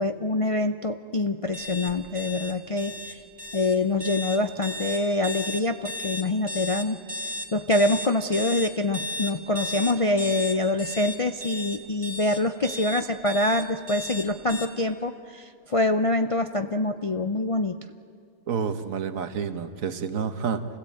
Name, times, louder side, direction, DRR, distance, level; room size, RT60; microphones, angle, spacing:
voice 1, 0.0-3.2 3.5-7.0 7.5-17.7, left 2 dB, 40° left, 7 dB, 0.5 m, -25 dB
sound 1, 1.5-14.6, left 1 dB, 20° right, 2.6 m, -34 dB
voice 2, 18.5-20.6, right 6 dB, 75° right, 9 dB, 1.5 m, -29 dB
27.5 x 16.5 x 8.6 m, 2.2 s
omnidirectional pair, 1.4 m